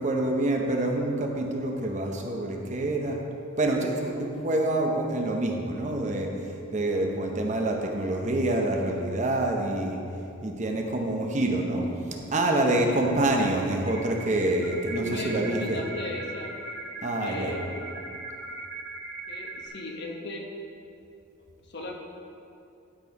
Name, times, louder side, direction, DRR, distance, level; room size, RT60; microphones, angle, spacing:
voice 1, 0.0-3.2 3.6-6.3 6.7-10.0 10.4-15.8 17.0-17.5, right 1 dB, 35° right, 1 dB, 0.8 m, -26 dB
sound 1, 13.9-19.7, right 2 dB, 80° right, 1.6 m, -39 dB
voice 2, 15.0-16.5 17.2-17.9 19.3-20.5 21.7-21.9, left 1 dB, 50° left, 1 dB, 1.0 m, -36 dB
11.5 x 4.6 x 5.2 m, 2.7 s
head